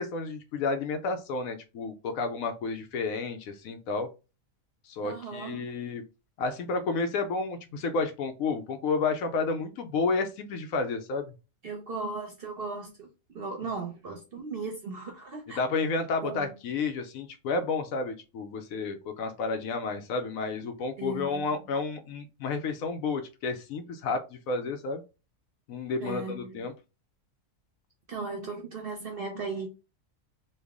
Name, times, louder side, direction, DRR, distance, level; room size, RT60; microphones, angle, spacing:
voice 1, 0.0-4.1 4.8-6.0 6.4-11.3 15.5-25.0 25.7-26.7, left 4 dB, 80° left, 6 dB, 1.0 m, -31 dB
voice 2, 5.0-5.7 11.6-15.6 16.2-16.5 21.0-21.6 26.0-26.7 28.1-29.7, right 4 dB, 55° right, 3 dB, 0.7 m, -37 dB
3.3 x 2.3 x 3.4 m, 0.29 s
omnidirectional pair, 1.5 m